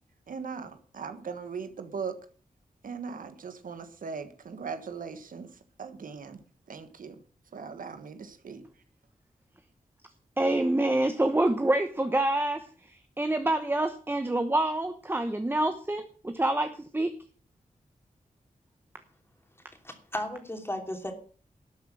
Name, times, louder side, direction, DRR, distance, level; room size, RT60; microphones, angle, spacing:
voice 1, 0.3-2.2 2.8-5.5 5.8-6.4 6.7-7.2 7.5-8.6, right 5 dB, 80° right, 9 dB, 1.4 m, -39 dB
voice 2, 10.4-17.1, right 1 dB, 15° right, 8 dB, 1.0 m, -27 dB
voice 3, 19.8-21.1, left 1 dB, 15° left, 5 dB, 2.8 m, -35 dB
12.5 x 7.5 x 7.6 m, 0.43 s
wide cardioid pair, 105°, 14 cm